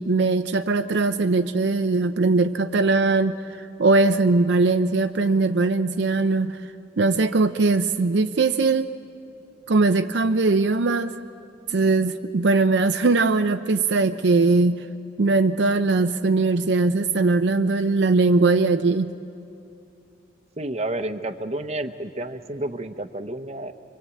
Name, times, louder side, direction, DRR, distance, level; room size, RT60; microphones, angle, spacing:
voice 1, 0.0-6.6 7.0-8.9 9.7-11.1 11.7-14.9 15.2-19.1, right 3 dB, 60° right, 8 dB, 0.5 m, -20 dB
voice 2, 20.6-23.7, right 1 dB, 35° right, 9 dB, 0.9 m, -30 dB
27.0 x 24.0 x 8.5 m, 2.7 s
head